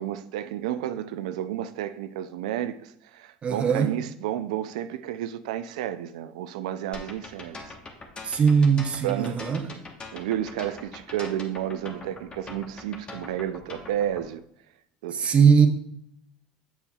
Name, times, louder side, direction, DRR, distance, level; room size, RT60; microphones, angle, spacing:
voice 1, 0.0-7.7 8.3-8.4 9.0-9.4 10.1-14.4 15.0-15.4, right 11 dB, 90° right, 0.4 m, -31 dB
voice 2, 3.4-4.0 8.2-9.7 15.1-15.7, right 6 dB, 35° right, 0.8 m, -20 dB
sound 1, 6.9-14.2, left 3 dB, 30° left, 1.2 m, -42 dB
7.0 x 7.0 x 2.3 m
supercardioid pair, 105°, 4 cm